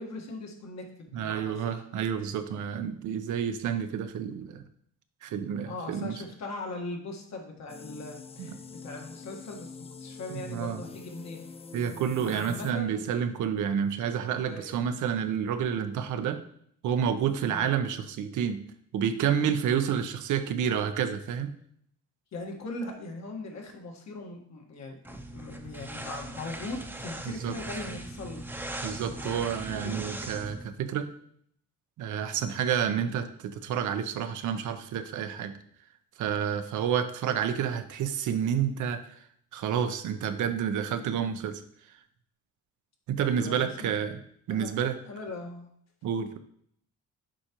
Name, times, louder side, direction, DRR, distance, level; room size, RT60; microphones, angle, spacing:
voice 1, 0.0-1.8 5.6-8.6 8.8-11.4 12.2-13.0 14.4-14.8 17.5-17.7 22.3-28.4 29.1-30.2 43.2-44.0 44.5-45.7, left 2 dB, 60° left, 2 dB, 1.5 m, -40 dB
voice 2, 1.1-4.6 5.2-6.2 8.4-8.6 10.5-10.8 11.7-16.4 16.8-18.7 18.9-21.5 27.2-27.6 28.8-31.1 32.0-35.6 36.2-39.0 39.5-41.6 43.1-44.2 44.5-44.9 46.0-46.4, right 8 dB, 75° right, 8 dB, 0.7 m, -29 dB
sound 1, 7.7-12.7, left 5 dB, 20° left, 0.3 m, -45 dB
sound 2, 25.0-30.6, right 1 dB, 5° right, 0.7 m, -39 dB
7.3 x 4.9 x 2.9 m, 0.66 s
cardioid pair, 90°, 30 cm